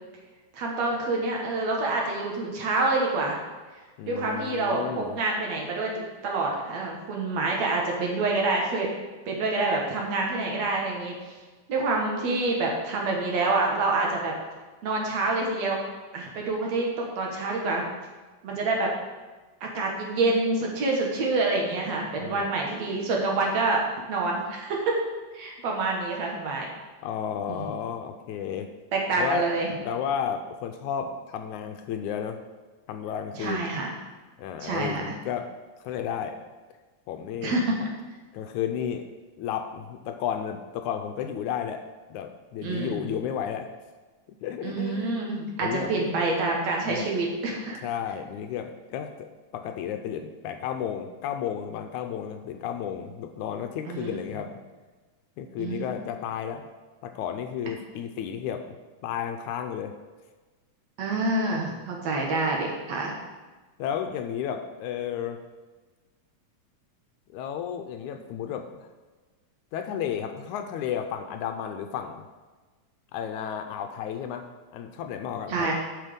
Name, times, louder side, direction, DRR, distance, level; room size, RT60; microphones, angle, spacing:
voice 1, 0.5-3.4 4.1-8.9 9.3-11.2 11.7-14.3 14.8-15.8 16.1-17.9 18.4-18.9 19.6-23.8 24.1-25.0 25.3-26.7 27.5-27.7 28.9-29.7 33.3-33.9 34.6-35.1 37.4-37.9 42.6-43.1 44.6-47.8 53.9-54.2 55.6-56.1 61.0-63.1 75.5-75.7, right 3 dB, 60° right, -1 dB, 2.5 m, -27 dB
voice 2, 4.0-5.2 22.2-22.5 27.0-28.7 29.1-29.5 29.8-32.4 32.9-33.7 34.4-35.5 35.8-36.4 37.1-37.6 38.3-39.1 39.4-41.8 42.1-43.7 44.4-45.3 45.6-46.0 46.9-47.1 47.8-54.5 55.4-56.7 57.0-58.8 59.0-59.9 62.7-62.8 63.8-65.4 67.3-68.9 69.7-72.2 73.1-74.5 74.7-75.7, left 8 dB, 80° left, 6 dB, 1.9 m, -32 dB
11.0 x 6.2 x 5.2 m, 1.3 s
omnidirectional pair, 3.6 m